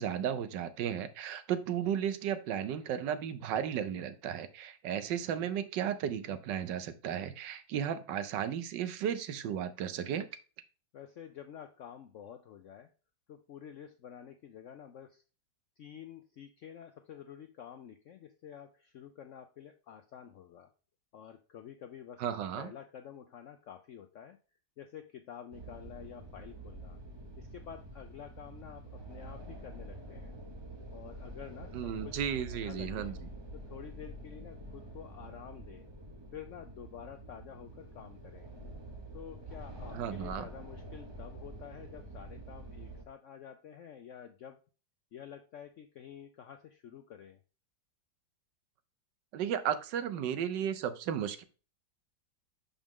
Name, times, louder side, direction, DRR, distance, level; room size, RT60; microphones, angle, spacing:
voice 1, 0.0-10.3 22.2-22.7 31.7-33.1 39.9-40.4 49.3-51.4, right 9 dB, 80° right, 11 dB, 1.4 m, -34 dB
voice 2, 10.9-12.9 13.3-15.2 15.8-20.7 21.1-24.4 24.8-27.0 27.4-30.3 30.9-33.2 33.5-35.9 36.3-38.5 39.1-44.6 45.1-47.4, left 9 dB, 90° left, 8 dB, 0.6 m, -49 dB
sound 1, 25.5-43.0, right 1 dB, 40° right, 0.3 m, -47 dB
6.1 x 5.4 x 3.5 m, 0.35 s
omnidirectional pair, 1.9 m